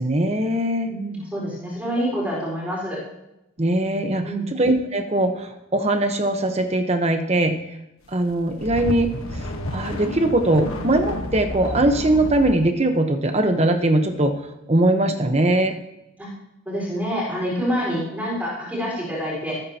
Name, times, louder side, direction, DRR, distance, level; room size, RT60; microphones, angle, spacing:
voice 1, 0.0-0.9 3.6-4.2 4.6-7.5 8.1-9.1 9.7-14.3 14.7-15.7, right 1 dB, 30° right, 6 dB, 1.1 m, -20 dB
voice 2, 0.9-3.0 4.2-4.5 16.2-16.3 16.6-19.6, equal, 5° right, -5 dB, 4.8 m, -27 dB
sound 1, 8.3-12.6, left 1 dB, 85° left, 1.4 m, -30 dB
18.5 x 9.6 x 2.9 m, 0.89 s
head